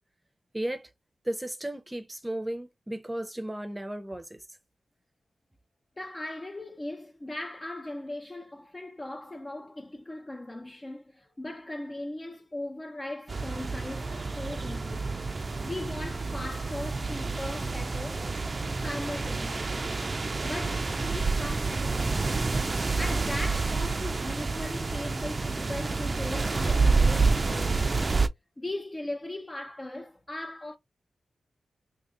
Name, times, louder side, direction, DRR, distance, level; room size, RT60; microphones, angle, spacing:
voice 1, 0.5-0.9 1.2-4.4, right 1 dB, 15° right, 0.7 m, -34 dB
voice 2, 6.0-15.2 15.6-18.3 18.8-20.0 20.4-22.3 23.0-28.0 28.6-30.8, left 1 dB, 30° left, 0.6 m, -38 dB
sound 1, 13.3-28.3, right 3 dB, 45° right, 0.5 m, -28 dB
2.9 x 2.6 x 3.8 m
cardioid pair, 50°, 0 cm